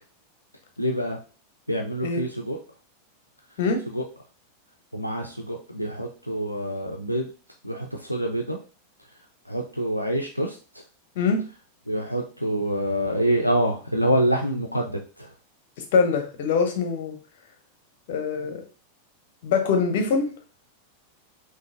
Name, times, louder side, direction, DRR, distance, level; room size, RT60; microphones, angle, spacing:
voice 1, 0.8-1.2 1.7-2.6 3.9-4.0 4.9-7.3 7.6-8.6 9.5-10.6 11.9-15.3, equal, 90° left, 1 dB, 0.4 m, -26 dB
voice 2, 15.9-17.2 18.1-18.6 19.4-20.3, left 5 dB, 55° left, 6 dB, 0.7 m, -23 dB
3.8 x 2.6 x 2.4 m, 0.37 s
figure-of-eight pair, 90°, 0 cm